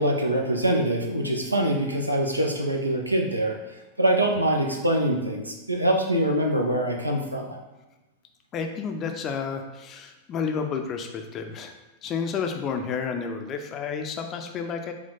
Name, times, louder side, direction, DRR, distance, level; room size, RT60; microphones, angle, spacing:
voice 1, 0.0-3.6 4.0-7.6, right 1 dB, 85° right, 1 dB, 0.5 m, -24 dB
voice 2, 8.5-11.7 12.0-14.9, left 6 dB, 30° left, 5 dB, 0.4 m, -31 dB
4.3 x 2.2 x 3.9 m, 1.1 s
figure-of-eight pair, 90°, 0 cm